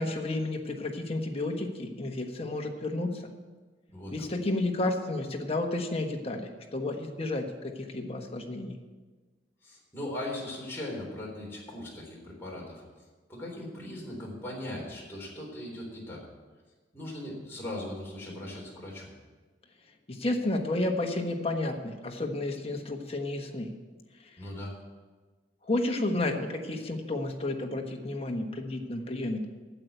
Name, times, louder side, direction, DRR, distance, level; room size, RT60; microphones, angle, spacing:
voice 1, 0.0-3.1 4.1-8.8 20.1-23.7 25.7-29.4, left 2 dB, 35° left, 3 dB, 1.3 m, -31 dB
voice 2, 3.9-4.3 9.6-12.8 13.3-16.3 16.9-19.1 24.4-24.8, left 1 dB, 15° left, -4 dB, 3.7 m, -39 dB
9.0 x 8.1 x 9.0 m, 1.3 s
head